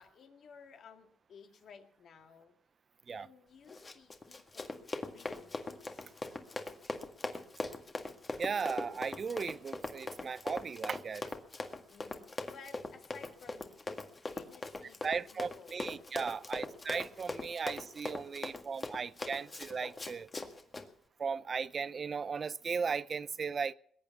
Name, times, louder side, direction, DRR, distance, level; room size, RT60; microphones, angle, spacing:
voice 1, 0.0-2.5 3.1-4.7 5.1-6.1 11.9-13.8 14.3-15.8 18.2-18.9 20.6-20.7, left 6 dB, 65° left, 2.1 m, -56 dB
Run, 3.7-20.9, left 3 dB, 30° left, 1.8 m, -41 dB
voice 2, 8.4-11.3 15.0-20.3 21.2-23.7, right 5 dB, 40° right, 0.6 m, -37 dB
21.0 x 8.9 x 7.1 m
cardioid pair, 90°, 0 cm